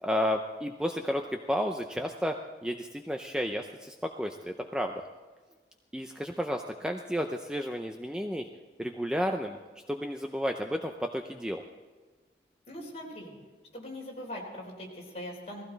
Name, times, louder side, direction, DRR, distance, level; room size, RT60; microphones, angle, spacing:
voice 1, 0.0-1.2 1.5-4.9 5.9-8.4 8.8-9.6 9.9-11.6, equal, 5° right, 4 dB, 0.5 m, -32 dB
voice 2, 12.7-13.3 13.7-15.6, left 1 dB, 35° left, -2 dB, 4.0 m, -41 dB
18.5 x 15.5 x 4.0 m, 1.3 s
head